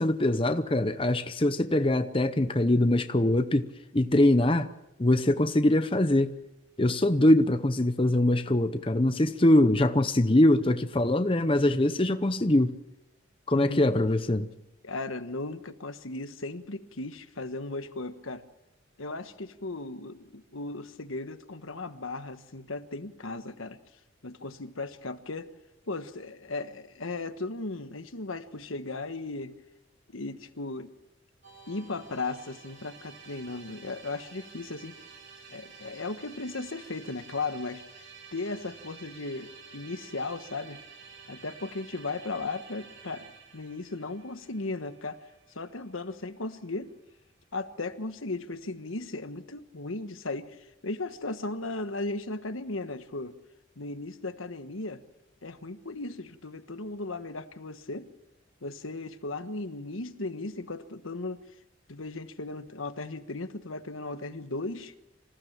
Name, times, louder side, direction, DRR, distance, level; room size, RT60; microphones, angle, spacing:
voice 1, 0.0-4.7 5.0-6.3 6.8-12.7 13.5-14.5, left 1 dB, 25° left, 0.8 m, -23 dB
voice 2, 13.5-13.9 14.8-18.4 19.0-23.8 24.2-25.5 25.9-29.5 30.1-30.9 31.7-35.0 35.5-37.8 38.3-40.8 41.3-43.3 43.5-45.2 45.5-46.9 47.5-53.4 53.8-55.0 55.4-58.1 58.6-61.4 61.9-64.9, left 3 dB, 85° left, 1.4 m, -36 dB
Musical instrument, 31.4-46.6, right 5 dB, 65° right, 5.1 m, -51 dB
26.0 x 15.5 x 7.4 m
head